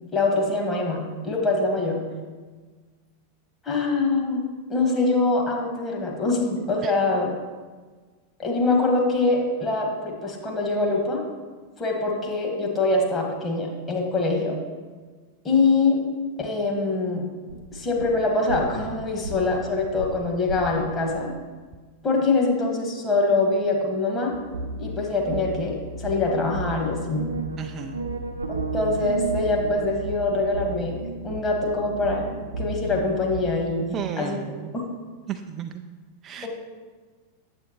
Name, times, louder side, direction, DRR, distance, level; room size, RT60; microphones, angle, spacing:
voice 1, 0.1-2.0 3.6-7.3 8.4-11.2 11.8-14.6 15.4-16.0 16.4-17.2 17.7-21.3 22.0-24.4 24.8-27.3 28.5-32.3 32.6-34.8 36.4-36.5, left 3 dB, 20° left, -1 dB, 1.6 m, -24 dB
sound 1, 17.5-21.2 24.3-33.4, right 2 dB, 75° right, 0.6 m, -34 dB
voice 2, 27.6-28.0 33.9-34.7 35.3-35.9 36.2-36.5, right 8 dB, 30° right, 7 dB, 0.3 m, -33 dB
8.1 x 7.5 x 3.0 m, 1.4 s
figure-of-eight pair, 90°, 0 cm